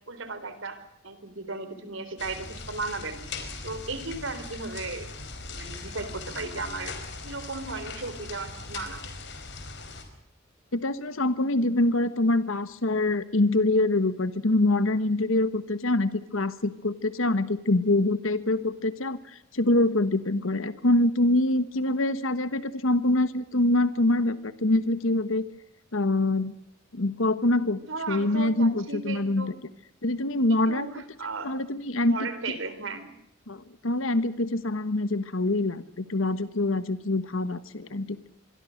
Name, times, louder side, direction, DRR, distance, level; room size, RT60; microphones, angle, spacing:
voice 1, 0.1-3.3 3.6-5.1 5.5-7.0 7.2-9.0 27.9-29.6 30.7-31.6 32.0-33.1, right 3 dB, 70° right, 12 dB, 4.0 m, -35 dB
sound 1, 2.2-10.0, left 3 dB, 60° left, 5.0 m, -40 dB
voice 2, 10.7-25.5 25.9-26.5 26.9-27.8 28.1-29.5 30.0-30.9 31.4-32.2 33.5-38.2, left 2 dB, 80° left, 13 dB, 1.3 m, -25 dB
26.0 x 22.5 x 6.6 m, 0.77 s
head